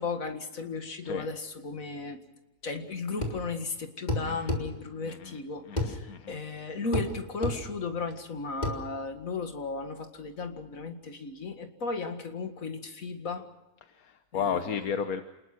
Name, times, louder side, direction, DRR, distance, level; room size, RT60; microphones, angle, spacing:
voice 1, 0.0-2.2 2.6-13.5 14.3-14.9, left 3 dB, 70° left, 6 dB, 2.4 m, -35 dB
sound 1, 3.2-3.4 4.1-4.6 5.8-5.9 6.9-7.1 7.4-7.6 8.6-8.8, left 1 dB, 30° left, 3.3 m, -29 dB
voice 2, 5.0-5.4 5.7-6.4 13.8-15.2, left 7 dB, 85° left, 8 dB, 1.5 m, -33 dB
28.5 x 20.0 x 6.1 m, 1.0 s
omnidirectional pair, 1.5 m